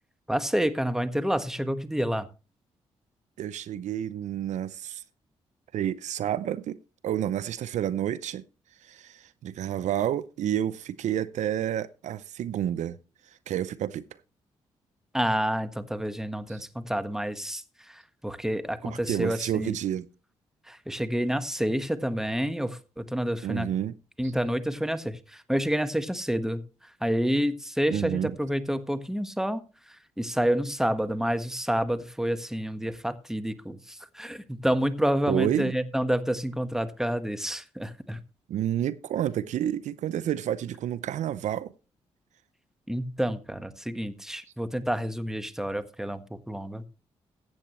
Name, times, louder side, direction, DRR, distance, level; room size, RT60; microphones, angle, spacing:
voice 1, 0.3-2.3 15.1-19.8 20.6-23.7 24.2-38.2 42.9-46.9, equal, 5° right, 1.3 m, -29 dB
voice 2, 3.4-5.0 5.7-6.8 7.0-8.4 8.8-13.0 13.5-14.0 18.8-20.1 23.4-23.9 27.9-28.3 35.3-35.7 38.5-41.7, right 10 dB, 75° right, 0.5 m, -29 dB
15.0 x 8.4 x 3.1 m
supercardioid pair, 55°, 12 cm